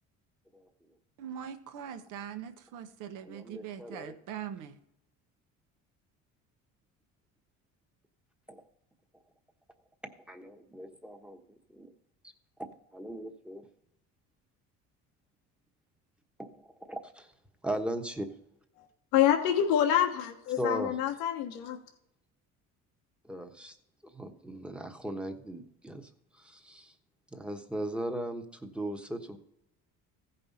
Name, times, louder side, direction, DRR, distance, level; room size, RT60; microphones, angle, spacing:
voice 1, 1.2-4.8, right 9 dB, 75° right, 1.1 m, -42 dB
voice 2, 3.2-4.1 8.5-8.6 10.3-11.4 11.7-11.9 12.9-13.7 16.4-17.3 17.6-18.3 20.6-21.0 23.2-23.8 24.1-26.9 27.3-29.4, right 1 dB, 5° right, 1.1 m, -38 dB
voice 3, 19.1-21.8, left 10 dB, 90° left, 1.2 m, -26 dB
15.5 x 5.5 x 4.2 m
cardioid pair, 110°, 31 cm